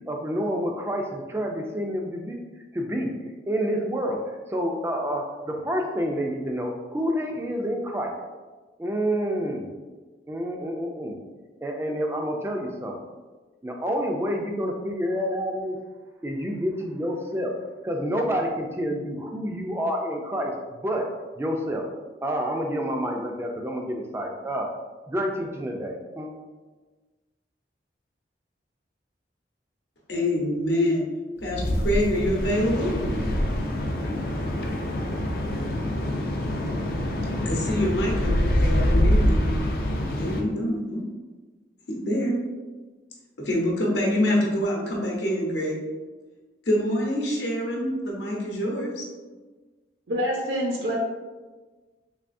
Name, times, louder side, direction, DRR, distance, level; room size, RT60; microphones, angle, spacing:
voice 1, 0.1-2.4 2.7-3.1 3.5-8.1 8.8-9.7 10.3-11.2 11.6-13.0 13.6-15.8 16.2-17.5 17.8-21.1 21.4-21.9 22.2-24.7 25.1-26.3, equal, 15° right, 1 dB, 0.3 m, -28 dB
voice 2, 30.1-31.0 31.4-33.0 37.4-39.5 40.2-41.0 41.9-42.4 43.4-45.7 46.7-49.1, equal, 75° left, -3 dB, 0.8 m, -25 dB
sound 1, 31.4-40.4, left 1 dB, 55° left, 0.4 m, -25 dB
voice 3, 50.1-50.9, equal, 75° right, -3 dB, 0.6 m, -26 dB
3.4 x 3.2 x 2.5 m, 1.3 s
head